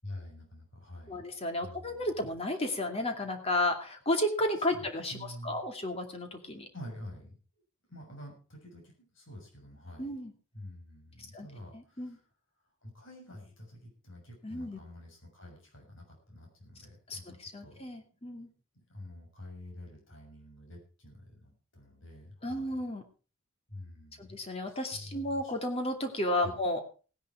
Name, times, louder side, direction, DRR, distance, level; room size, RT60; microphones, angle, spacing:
voice 1, 0.0-1.2 1.6-2.1 4.6-5.6 6.7-7.3 7.9-10.1 10.5-12.2 12.8-17.8 18.9-22.8 23.7-24.4 24.7-25.5 26.4-26.6, left 1 dB, 70° left, 2 dB, 6.5 m, -48 dB
voice 2, 1.1-6.7 10.0-10.3 11.3-11.5 11.7-12.2 14.4-14.8 17.1-18.5 22.4-23.0 24.2-26.8, left 1 dB, 30° left, 5 dB, 2.5 m, -33 dB
17.0 x 10.5 x 4.6 m, 0.36 s
head